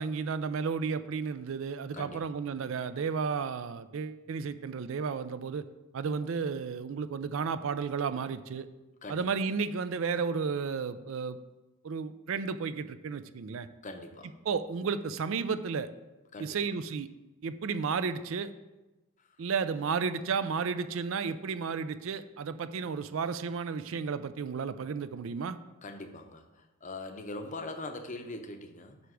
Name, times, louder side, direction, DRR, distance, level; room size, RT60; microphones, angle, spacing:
voice 1, 0.0-5.6 5.9-8.7 9.1-11.4 11.8-13.7 14.4-15.9 16.4-17.1 17.4-18.5 19.4-25.6, right 5 dB, 65° right, 13 dB, 0.4 m, -33 dB
voice 2, 1.9-2.4 9.0-9.3 13.8-14.3 16.3-16.6 25.8-29.0, left 2 dB, 35° left, 6 dB, 0.7 m, -42 dB
9.6 x 3.4 x 6.2 m, 1.1 s
head